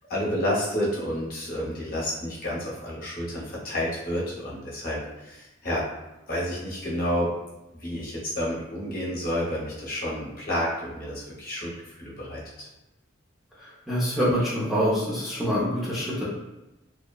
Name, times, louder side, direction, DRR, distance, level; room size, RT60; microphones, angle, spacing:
voice 1, 0.1-5.8 6.3-7.3 7.7-12.7, equal, 45° left, -6 dB, 0.8 m, -30 dB
voice 2, 13.6-16.2, equal, ahead, -9 dB, 0.5 m, -25 dB
2.8 x 2.1 x 2.3 m, 1.0 s
head